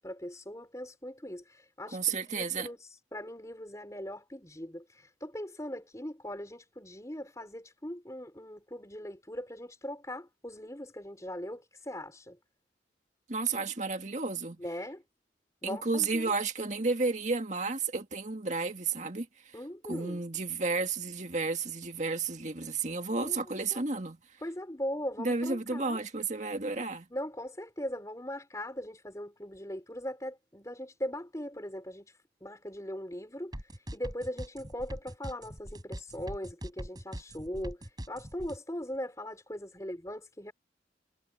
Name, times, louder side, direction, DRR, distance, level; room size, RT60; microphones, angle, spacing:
voice 1, 0.0-12.4 14.6-15.0 15.6-16.3 19.5-20.2 23.2-23.8 24.4-26.0 27.1-32.1 32.4-33.5 33.9-40.5, equal, 15° left, 4.5 m, -40 dB
voice 2, 1.9-2.7 13.3-14.6 15.6-19.3 19.8-24.2 25.2-27.1, right 4 dB, 40° right, 1.9 m, -32 dB
sound 1, 33.5-38.6, equal, 20° right, 5.8 m, -41 dB
head